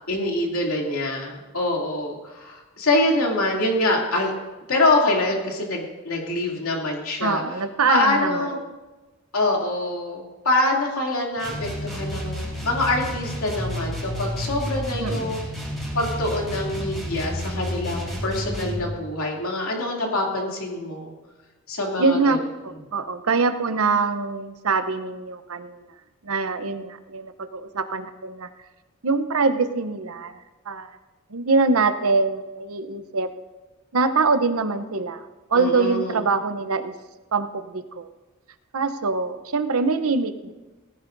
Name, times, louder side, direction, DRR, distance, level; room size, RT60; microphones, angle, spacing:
voice 1, 0.1-4.3 4.7-7.6 7.9-8.6 9.3-15.4 15.9-21.1 21.7-22.4 35.5-36.2, left 2 dB, 75° left, -1 dB, 2.7 m, -25 dB
voice 2, 7.2-8.7 15.0-15.4 22.0-25.8 26.2-28.5 29.0-30.4 30.7-30.9 31.3-33.3 33.9-35.2 35.5-36.9 37.3-38.1 38.7-40.5, right 4 dB, 75° right, 10 dB, 0.8 m, -24 dB
sound 1, 11.4-18.9, equal, ahead, 3.9 m, -30 dB
18.5 x 15.5 x 2.6 m, 1.2 s
head